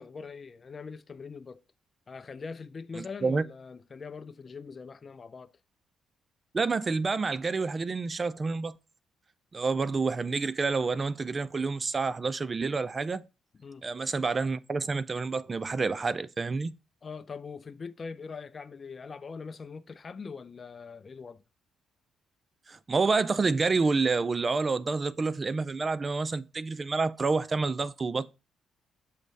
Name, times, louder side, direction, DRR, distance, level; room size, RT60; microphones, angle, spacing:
voice 1, 0.0-1.6 2.1-5.5 13.6-13.9 17.0-21.4, left 5 dB, 35° left, 0.5 m, -42 dB
voice 2, 3.0-3.4 6.5-8.8 9.5-13.2 13.8-16.7 22.7-28.3, right 4 dB, 30° right, 0.4 m, -28 dB
6.5 x 3.0 x 5.3 m
cardioid pair, 90°, 0 cm